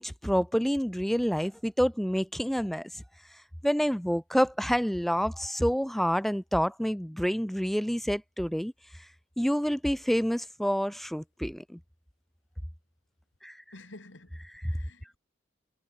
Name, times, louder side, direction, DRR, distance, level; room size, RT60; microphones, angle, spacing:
voice 1, 0.0-3.0 3.6-8.7 9.4-11.8 13.4-13.6 14.5-14.7, equal, ahead, 0.4 m, -28 dB
voice 2, 13.7-15.2, left 2 dB, 80° left, 2.4 m, -51 dB
head